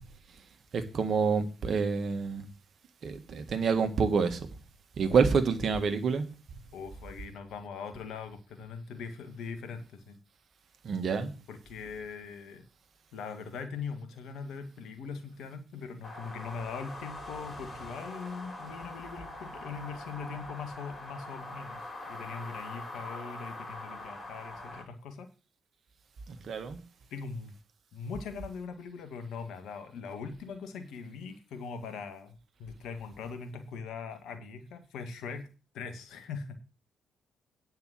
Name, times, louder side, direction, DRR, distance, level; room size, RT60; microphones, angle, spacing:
voice 1, 0.7-2.5 3.0-4.5 5.0-6.3 10.8-11.3 26.3-26.8, right 5 dB, 60° right, 1.7 m, -27 dB
voice 2, 6.7-10.2 11.5-12.7 13.1-25.3 27.1-27.5 27.9-35.5 35.7-36.6, left 5 dB, 70° left, 1.8 m, -41 dB
sound 1, 16.0-24.8, left 2 dB, 35° left, 4.3 m, -43 dB
9.7 x 5.5 x 7.7 m
hypercardioid pair, 45°, 0 cm